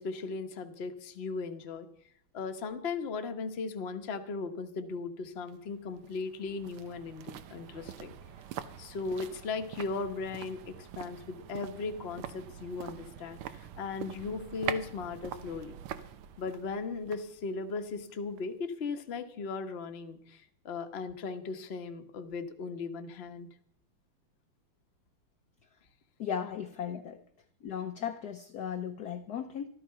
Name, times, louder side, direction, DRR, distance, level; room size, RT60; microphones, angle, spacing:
voice 1, 0.0-1.9 2.3-8.1 8.8-15.7 16.4-23.5, left 4 dB, 40° left, 7 dB, 0.9 m, -37 dB
sound 1, 5.5-18.6 18.9-19.0, right 10 dB, 90° right, 1.7 m, -44 dB
voice 2, 26.2-27.2 27.6-29.7, left 8 dB, 65° left, 8 dB, 1.0 m, -36 dB
13.0 x 12.5 x 5.6 m, 0.64 s
omnidirectional pair, 2.3 m